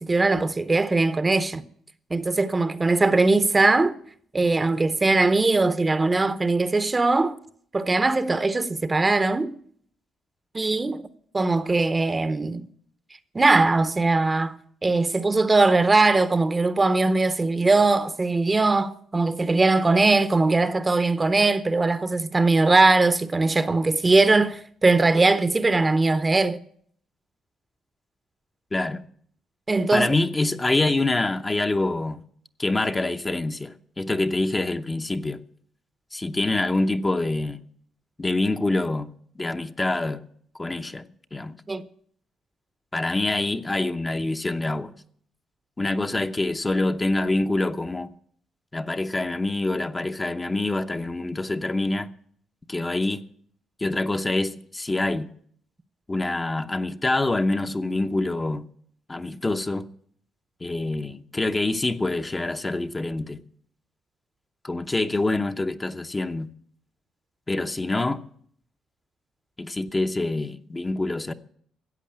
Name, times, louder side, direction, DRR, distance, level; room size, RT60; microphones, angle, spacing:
voice 1, 0.0-1.6 2.1-4.0 4.3-7.4 7.7-9.5 10.5-11.0 11.3-12.6 13.3-14.6 14.8-26.6 29.7-30.1 41.7-41.8, right 3 dB, 25° right, 0.8 m, -20 dB
voice 2, 28.7-29.0 29.9-32.2 32.6-35.4 36.1-37.6 38.2-39.1 39.4-40.2 40.6-41.5 42.9-44.9 45.8-48.1 48.7-52.1 52.7-53.2 53.8-55.3 56.1-58.6 59.1-59.8 60.6-63.4 64.6-66.5 67.5-68.2 69.6-71.3, left 2 dB, 20° left, 0.8 m, -26 dB
14.0 x 8.3 x 8.7 m
cardioid pair, 90°, 0 cm